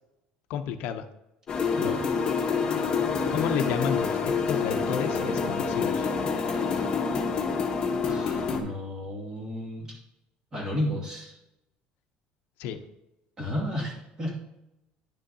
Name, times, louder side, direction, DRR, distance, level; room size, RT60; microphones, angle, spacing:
voice 1, 0.5-1.1 3.3-4.2 4.5-6.1 12.6-12.8, left 8 dB, 65° left, 7 dB, 0.7 m, -31 dB
sound 1, 1.5-8.6, left 5 dB, 25° left, 1.1 m, -27 dB
voice 2, 1.8-2.1 8.1-9.9 10.5-11.4 13.4-14.3, left 1 dB, 20° right, -2 dB, 2.2 m, -32 dB
10.5 x 6.3 x 2.8 m, 0.91 s
cardioid pair, 155°, 3 cm